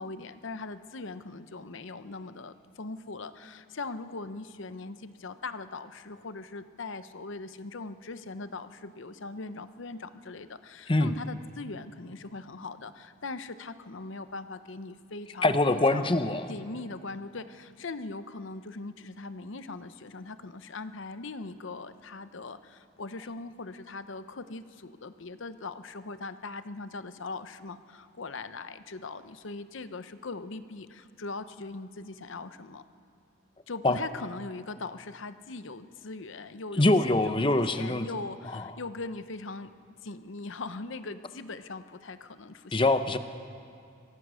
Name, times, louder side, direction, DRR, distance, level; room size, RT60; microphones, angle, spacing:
voice 1, 0.0-16.2 16.5-32.8 33.7-39.7 40.0-42.9, left 3 dB, 65° left, 12 dB, 0.8 m, -40 dB
voice 2, 15.4-16.5 33.8-34.0 36.8-38.1 38.5-38.6 42.7-43.2, left 2 dB, 25° left, 9 dB, 0.8 m, -24 dB
24.0 x 17.5 x 6.3 m, 2.4 s
head